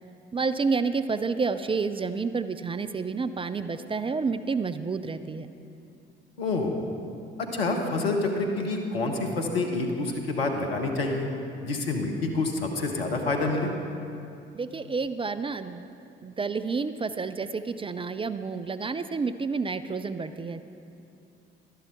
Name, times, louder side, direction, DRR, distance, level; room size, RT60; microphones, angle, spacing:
voice 1, 0.3-5.5 14.5-15.9 16.2-20.6, right 4 dB, 20° right, 11 dB, 0.4 m, -29 dB
voice 2, 6.4-6.7 7.4-11.3 11.6-13.7, left 3 dB, 85° left, 2 dB, 1.1 m, -27 dB
12.0 x 11.5 x 4.5 m, 2.6 s
figure-of-eight pair, 50°, 29 cm